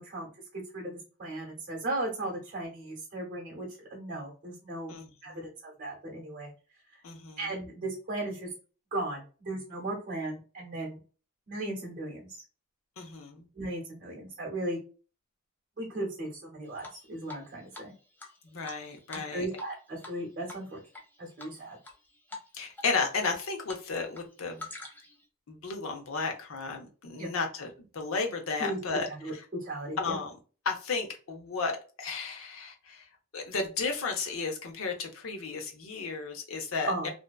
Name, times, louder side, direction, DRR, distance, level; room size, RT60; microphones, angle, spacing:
voice 1, 0.0-4.9 5.2-6.5 7.4-8.5 8.9-11.0 11.5-12.3 13.5-14.8 15.8-17.9 19.1-20.8 21.2-21.8 27.2-27.3 28.6-28.8 29.1-30.2 36.8-37.1, right 1 dB, 40° right, -3 dB, 0.9 m, -36 dB
voice 2, 4.9-5.4 7.0-7.4 13.0-13.5 18.4-19.5 22.5-24.6 25.5-29.1 30.0-30.3 30.7-33.0 33.3-36.9, left 4 dB, 75° left, 3 dB, 0.6 m, -33 dB
Drip, 16.8-17.5 17.7-17.8 18.2-19.7 20.0-20.2 20.5-21.0 21.4-21.9 22.3-22.5 22.8-23.8 24.1-25.2, left 2 dB, 10° left, 0.4 m, -44 dB
2.6 x 2.2 x 2.3 m, 0.36 s
head